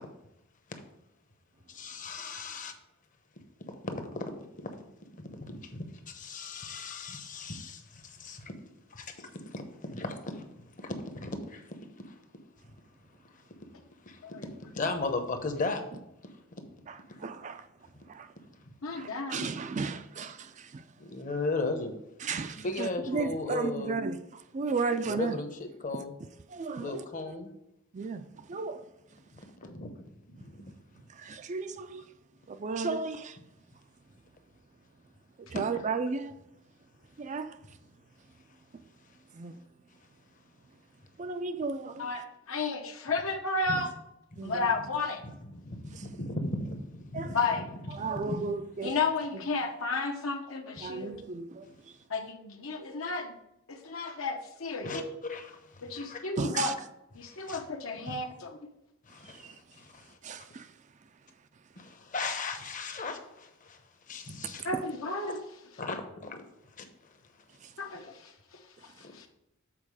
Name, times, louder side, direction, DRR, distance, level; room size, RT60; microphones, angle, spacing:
voice 1, 1.7-2.7 3.8-4.3 4.6-4.7 5.1-8.5 8.9-9.6 9.9-11.7 12.0-12.1 14.1-14.2 14.6-15.8 17.1-17.2 21.0-22.0 22.5-24.0 25.1-26.1 26.8-27.5 29.6-30.7 35.8-35.9 43.7-43.8 44.3-44.4 45.2-47.7 48.0-48.6 50.9-51.0 51.6-51.7 54.8-56.2 57.2-57.6 58.1-58.2 59.1-60.2 61.8-63.8 64.1-64.6 65.2-65.4 65.8-66.4 66.8-67.1 69.0-69.1, left 3 dB, 40° left, 0.9 m, -37 dB
voice 2, 16.9-17.7 18.1-18.3 19.0-20.8 22.2-25.4 26.5-27.0 27.9-28.8 31.1-32.0 32.5-33.4 35.5-36.3 37.2-37.6 39.3-39.6 41.2-42.1 44.4-44.7 45.9-46.0 47.1-47.4 47.9-48.9 50.8-51.7 56.4-56.7 59.3-59.6 60.2-60.7 64.4-64.5, right 4 dB, 35° right, 0.4 m, -34 dB
voice 3, 18.8-19.5 29.6-29.7 42.0-43.9 44.4-45.2 47.3-47.7 48.8-51.1 52.1-53.3 53.7-55.0 55.8-56.7 57.1-58.6 64.6-65.4 67.8-69.3, left 3 dB, 75° left, 1.1 m, -33 dB
7.5 x 4.4 x 4.8 m
head